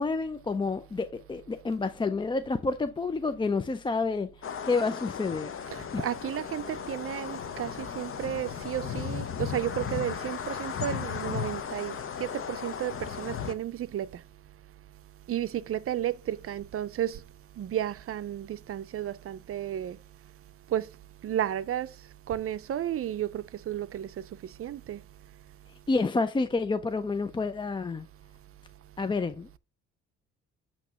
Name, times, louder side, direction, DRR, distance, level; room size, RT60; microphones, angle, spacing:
voice 1, 0.0-4.3 4.7-5.6 5.9-6.0 25.9-28.1 29.0-29.6, left 3 dB, 15° left, 0.4 m, -29 dB
sound 1, 4.4-13.5, left 7 dB, 45° left, 0.8 m, -36 dB
voice 2, 5.7-14.2 15.3-17.2 17.6-20.0 20.7-20.9 21.2-21.9 22.3-25.0, right 11 dB, 50° right, 0.5 m, -33 dB
8.2 x 3.0 x 6.2 m
cardioid pair, 90°, 30 cm